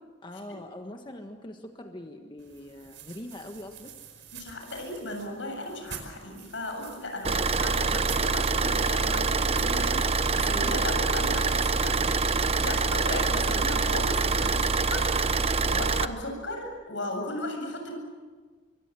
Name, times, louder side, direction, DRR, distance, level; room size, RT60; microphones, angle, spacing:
voice 1, 0.2-3.9, left 1 dB, 25° left, 4 dB, 1.5 m, -42 dB
sound 1, 2.4-11.0, right 7 dB, 80° right, 4.9 m, -48 dB
voice 2, 4.3-12.1 12.6-17.9, left 1 dB, 80° left, 4 dB, 7.7 m, -36 dB
Car / Idling, 7.2-16.1, right 4 dB, 35° right, 0.9 m, -25 dB
26.0 x 24.0 x 7.7 m, 1.4 s
head